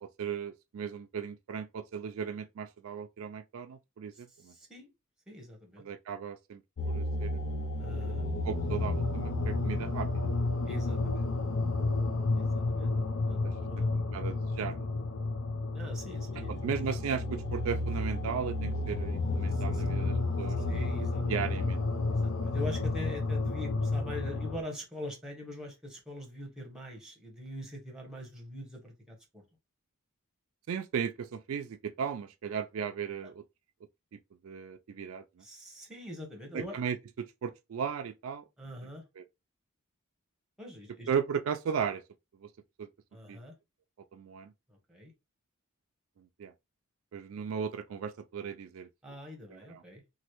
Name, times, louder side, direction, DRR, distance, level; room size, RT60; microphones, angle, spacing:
voice 1, 0.0-4.5 5.8-7.4 8.4-10.4 12.4-14.9 16.5-20.6 21.3-21.8 30.7-33.4 34.1-35.4 36.5-38.4 38.8-38.9 39.2-39.3 41.1-42.0 42.4-42.5 42.8-42.9 43.3-43.4 44.1-44.5 46.2-46.5 47.1-48.9 49.5-49.8, right 7 dB, 70° right, 0.4 m, -36 dB
voice 2, 4.5-4.9 5.3-5.8 7.8-8.3 10.7-11.3 12.4-12.9 13.3-14.0 15.7-16.6 19.5-19.8 20.7-21.2 22.1-29.4 35.4-36.7 38.6-39.0 40.6-41.1 43.1-43.5 44.9-45.1 49.0-50.0, left 1 dB, 5° right, 0.9 m, -43 dB
sound 1, 6.8-24.6, left 2 dB, 85° left, 0.5 m, -31 dB
3.0 x 2.5 x 2.9 m
head